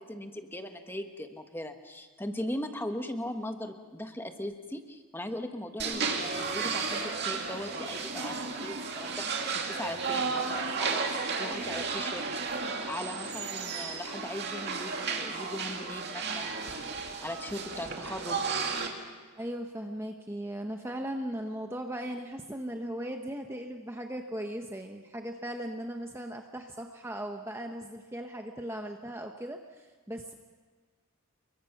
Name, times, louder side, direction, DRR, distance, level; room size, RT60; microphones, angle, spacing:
voice 1, 0.0-12.3 12.9-16.5 17.2-18.4, left 1 dB, 10° left, 6 dB, 1.3 m, -39 dB
sound 1, 5.8-18.9, right 4 dB, 50° right, 2.5 m, -33 dB
voice 2, 19.0-30.3, right 1 dB, 10° right, 3 dB, 0.9 m, -38 dB
29.5 x 23.0 x 5.9 m, 1.5 s
head